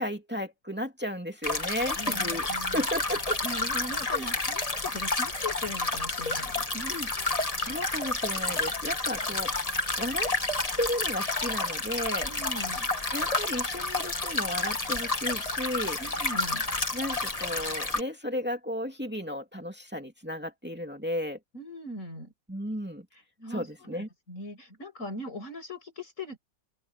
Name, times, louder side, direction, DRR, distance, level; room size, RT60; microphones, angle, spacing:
voice 1, 0.0-2.5 2.7-3.4 4.1-4.3 6.9-7.1 7.6-10.3 10.8-12.3 13.1-16.0 16.9-21.4 22.5-23.1 23.5-24.1, equal, 10° right, 2.5 m, -34 dB
sound 1, 1.4-18.0, left 2 dB, 30° left, 1.8 m, -30 dB
voice 2, 2.0-2.8 3.4-7.3 12.2-12.9 16.0-16.7 21.5-22.3 23.4-26.4, left 1 dB, 85° left, 7.1 m, -39 dB
open air
omnidirectional pair, 1.3 m